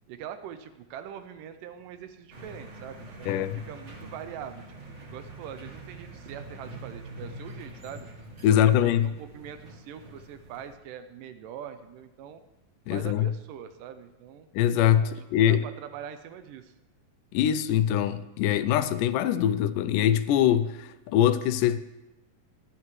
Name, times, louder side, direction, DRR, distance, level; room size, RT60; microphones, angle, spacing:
voice 1, 0.1-8.1 8.5-12.4 12.9-14.5 15.0-16.7, right 9 dB, 85° right, 2.2 m, -43 dB
sound 1, 2.3-10.8, right 2 dB, 50° right, 0.8 m, -45 dB
voice 2, 3.3-3.6 8.4-9.1 12.9-13.3 14.5-15.6 17.3-21.8, left 10 dB, 80° left, 2.1 m, -23 dB
17.0 x 11.0 x 3.1 m
omnidirectional pair, 3.9 m